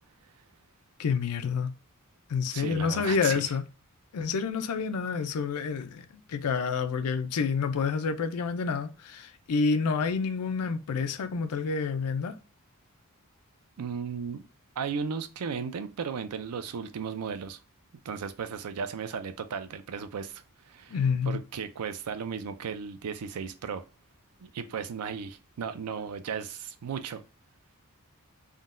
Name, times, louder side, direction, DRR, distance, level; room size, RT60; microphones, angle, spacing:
voice 1, 1.0-1.7 2.3-3.6 4.1-12.4 20.9-21.4, left 5 dB, 80° left, 0.4 m, -28 dB
voice 2, 2.5-3.5 13.8-14.4 14.8-17.6 18.0-21.0 21.3-23.8 24.4-27.2, right 6 dB, 80° right, 0.4 m, -35 dB
3.7 x 2.2 x 2.4 m
head